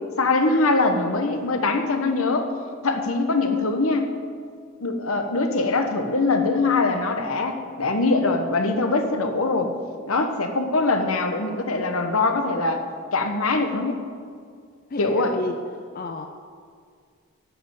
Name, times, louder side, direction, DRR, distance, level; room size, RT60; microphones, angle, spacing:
voice 1, 0.2-2.5 2.8-4.1 4.8-9.7 10.1-12.8 13.1-14.0 15.0-15.4, left 3 dB, 75° left, 6 dB, 1.1 m, -22 dB
voice 2, 14.9-15.6 15.9-16.3, left 2 dB, 40° left, 6 dB, 0.5 m, -31 dB
12.0 x 5.4 x 9.0 m, 2.1 s
head